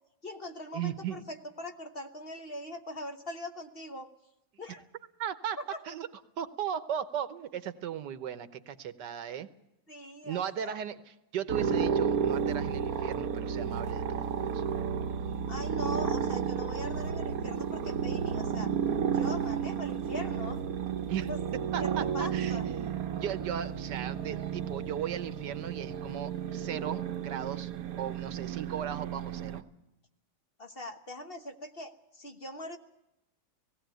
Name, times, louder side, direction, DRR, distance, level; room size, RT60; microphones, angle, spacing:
voice 1, 0.2-4.1 4.6-4.9 5.6-5.7 9.9-10.8 15.5-18.7 19.1-20.6 21.3-21.4 21.8-22.7 30.6-32.8, left 1 dB, 35° left, 6 dB, 1.3 m, -41 dB
voice 2, 0.7-1.2 5.2-5.6 5.9-6.1 6.4-9.5 10.2-14.6 21.1-21.3 21.7-27.7 28.0-29.6, right 9 dB, 75° right, 13 dB, 1.6 m, -37 dB
sound 1, 11.5-29.6, right 7 dB, 60° right, 1.3 m, -32 dB
18.0 x 17.0 x 9.2 m, 0.90 s
omnidirectional pair, 1.9 m